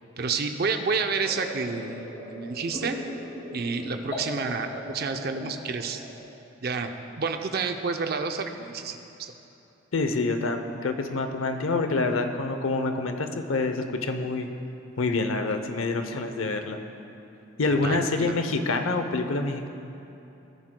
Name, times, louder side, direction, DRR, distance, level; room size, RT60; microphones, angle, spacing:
voice 1, 0.2-3.0 3.5-6.0 6.6-6.9 7.2-9.3 17.7-18.3, right 4 dB, 50° right, 6 dB, 0.6 m, -30 dB
sound 1, 1.1-6.2, equal, 20° left, 2.3 m, -38 dB
voice 2, 9.9-14.5 15.0-16.8 17.6-19.7, left 3 dB, 80° left, 7 dB, 0.7 m, -27 dB
17.0 x 9.8 x 2.2 m, 3.0 s
head